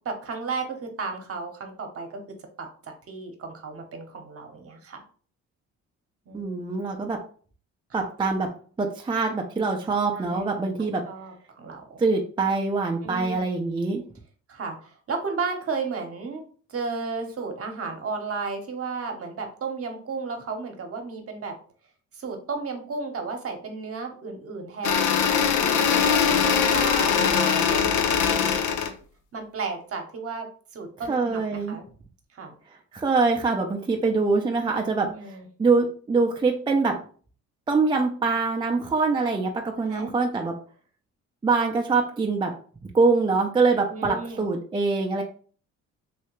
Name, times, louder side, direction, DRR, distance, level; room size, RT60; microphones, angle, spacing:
voice 1, 0.0-2.2 2.6-5.0 6.3-6.8 10.2-10.4 10.8-12.0 13.0-13.4 14.5-16.4 16.7-21.5 22.1-28.6 29.3-30.5 30.7-31.8 32.3-32.5 35.0-35.5 39.9-40.1 43.9-44.5, right 4 dB, 50° right, 4 dB, 0.9 m, -34 dB
voice 2, 6.3-7.2 7.9-8.5 8.8-11.0 12.0-14.0 31.1-31.8 32.9-37.0 37.7-40.5 41.4-42.5 42.9-45.2, right 4 dB, 15° right, 2 dB, 0.5 m, -24 dB
sound 1, 24.8-28.9, left 7 dB, 85° left, 0.5 m, -21 dB
3.3 x 2.7 x 3.0 m, 0.43 s
cardioid pair, 90°, 30 cm